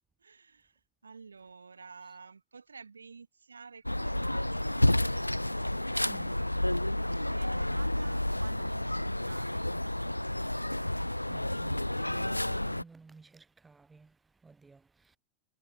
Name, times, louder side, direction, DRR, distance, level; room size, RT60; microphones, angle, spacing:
voice 1, 0.2-4.8 7.1-9.7, right 5 dB, 75° right, 2.4 m, -51 dB
sound 1, 3.9-12.8, left 1 dB, 85° left, 1.3 m, -30 dB
voice 2, 11.3-14.1 14.4-14.8, right 4 dB, 10° right, 4.4 m, -55 dB
figure-of-eight pair, 90°, 0 cm